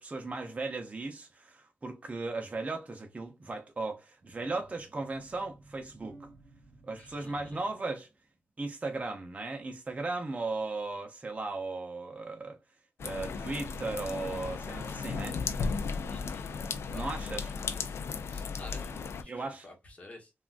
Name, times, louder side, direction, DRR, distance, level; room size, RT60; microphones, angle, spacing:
voice 1, 0.0-6.3 6.8-8.1 8.6-12.6 13.0-15.4 16.9-17.5 19.3-19.7, right 3 dB, 30° right, 0.6 m, -37 dB
sound 1, 4.2-8.4, right 2 dB, 50° right, 1.4 m, -56 dB
voice 2, 7.0-7.6 16.1-16.5 16.9-18.0 18.3-20.3, left 1 dB, 30° left, 1.1 m, -51 dB
sound 2, 13.0-19.2, left 5 dB, 90° left, 0.4 m, -35 dB
3.5 x 2.4 x 2.4 m
wide cardioid pair, 95°, 4 cm